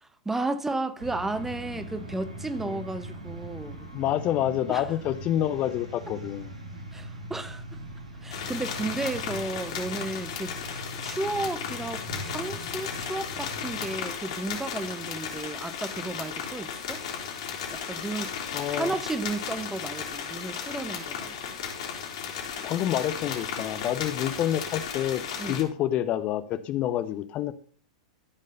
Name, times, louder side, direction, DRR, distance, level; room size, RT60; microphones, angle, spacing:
voice 1, 0.0-3.8 4.7-4.9 6.9-7.6 8.2-17.0 17.7-18.3 18.7-21.5 25.4-25.6, right 2 dB, 10° right, 1.0 m, -33 dB
sound 1, 1.0-14.0, right 1 dB, 85° right, 2.7 m, -41 dB
voice 2, 3.9-6.5 18.5-18.9 22.6-25.2 25.5-27.5, left 12 dB, 35° left, 0.8 m, -28 dB
sound 2, 8.3-25.6, left 7 dB, 60° left, 3.1 m, -35 dB
13.0 x 5.3 x 5.5 m
figure-of-eight pair, 95°, 3 cm